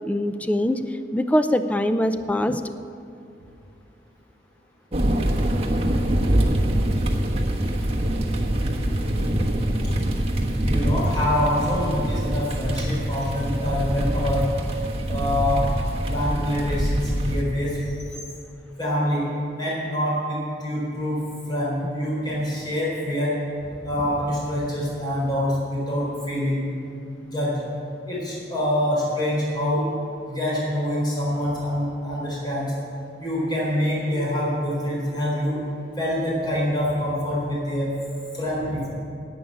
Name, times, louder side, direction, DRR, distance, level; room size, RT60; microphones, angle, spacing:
voice 1, 0.0-2.6, left 1 dB, 10° left, 9 dB, 0.5 m, -23 dB
sound 1, 4.9-17.4, right 1 dB, 35° right, 1.2 m, -24 dB
voice 2, 10.6-14.5 15.1-15.6 16.0-17.8 18.8-19.2 19.5-21.2 21.5-23.3 23.8-26.9 27.2-27.5 28.1-29.8 30.3-32.7 33.2-35.6 36.0-37.9 38.3-38.9, left 1 dB, 25° left, -6 dB, 4.1 m, -25 dB
11.0 x 8.7 x 9.1 m, 2.6 s
head